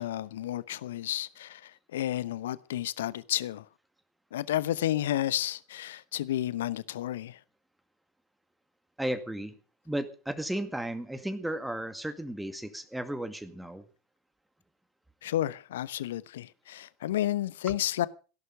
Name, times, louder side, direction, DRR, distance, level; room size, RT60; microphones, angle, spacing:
voice 1, 0.0-3.7 4.3-7.4 15.2-18.1, left 13 dB, 65° left, 0.9 m, -31 dB
voice 2, 9.0-9.5 9.9-13.9 17.7-17.8, right 1 dB, 5° right, 2.0 m, -34 dB
17.5 x 11.0 x 6.4 m
figure-of-eight pair, 80°, 0 cm